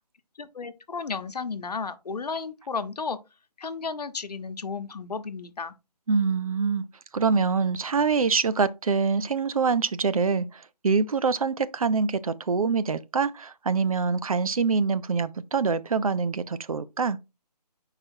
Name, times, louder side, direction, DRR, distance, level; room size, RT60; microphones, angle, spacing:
voice 1, 0.4-3.2 3.6-5.7, left 5 dB, 70° left, 1.0 m, -33 dB
voice 2, 6.1-6.8 7.1-17.2, right 5 dB, 55° right, 0.6 m, -25 dB
4.9 x 4.8 x 4.5 m
hypercardioid pair, 165°, 21 cm